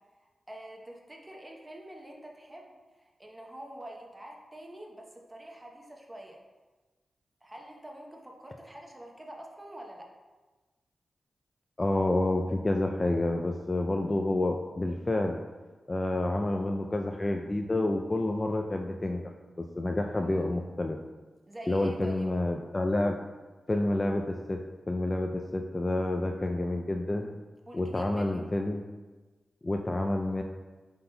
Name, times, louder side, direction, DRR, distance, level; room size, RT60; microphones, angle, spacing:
voice 1, 0.5-2.7 3.2-6.4 7.4-10.1 19.9-20.5 21.4-22.3 27.7-28.5, right 1 dB, 20° right, 0 dB, 0.8 m, -46 dB
voice 2, 11.8-15.4 15.9-19.2 19.8-21.0 21.7-23.1 23.7-24.6 24.9-27.3 27.7-28.8 29.6-30.4, left 2 dB, 30° left, 2 dB, 0.3 m, -29 dB
5.3 x 4.0 x 2.2 m, 1.3 s
cardioid pair, 50°, 0 cm